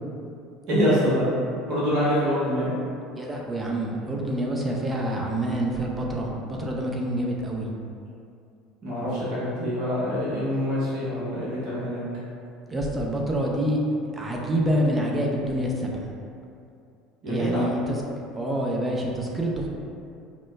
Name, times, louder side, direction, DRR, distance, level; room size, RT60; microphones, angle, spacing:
voice 1, 0.7-1.2 1.7-2.7 8.8-12.0 17.2-17.6, equal, 55° right, -9 dB, 1.1 m, -25 dB
voice 2, 3.2-7.7 12.7-13.8 14.1-16.0 17.3-18.0 18.3-19.7, right 1 dB, 20° right, -1 dB, 0.6 m, -27 dB
5.0 x 2.1 x 2.3 m, 2.5 s
hypercardioid pair, 70°, 0 cm